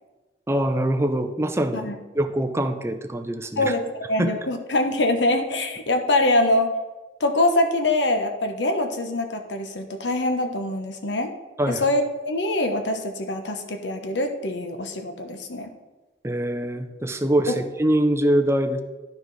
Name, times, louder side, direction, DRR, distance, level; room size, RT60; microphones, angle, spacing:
voice 1, 0.5-1.9 2.1-3.7 4.2-4.3 11.6-11.8 16.2-18.8, right 1 dB, 15° right, 6 dB, 0.6 m, -23 dB
voice 2, 3.6-6.7 7.2-11.3 11.7-15.7 17.5-17.6, left 2 dB, 85° left, 6 dB, 1.0 m, -24 dB
12.0 x 4.7 x 4.0 m, 1.2 s
head